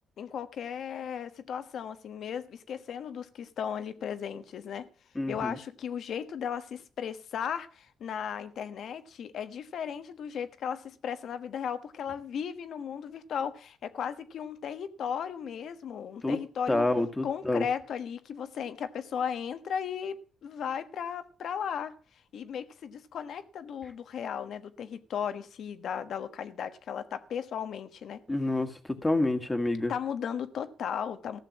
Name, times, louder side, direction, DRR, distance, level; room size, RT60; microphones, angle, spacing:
voice 1, 0.2-4.9 5.3-16.8 17.2-20.2 20.4-21.9 22.3-28.2 29.9-31.4, left 8 dB, 65° left, 1.3 m, -36 dB
voice 2, 5.2-5.6 16.2-16.4 16.7-17.7 28.3-28.7 29.0-29.9, left 2 dB, 15° left, 1.9 m, -27 dB
15.0 x 6.7 x 7.3 m
cardioid pair, 90°, 0 cm